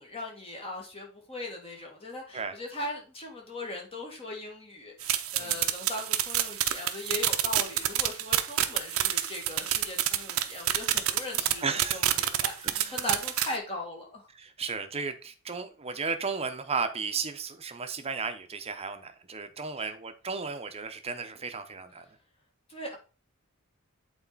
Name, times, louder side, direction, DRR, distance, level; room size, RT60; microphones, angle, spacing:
voice 1, 0.0-14.3 22.7-23.0, left 1 dB, 25° left, 2.0 m, -39 dB
sound 1, 5.0-13.5, right 12 dB, 70° right, 0.8 m, -28 dB
voice 2, 11.6-12.1 12.7-13.0 14.3-22.0, right 5 dB, 30° right, 0.9 m, -34 dB
8.6 x 4.3 x 4.1 m
head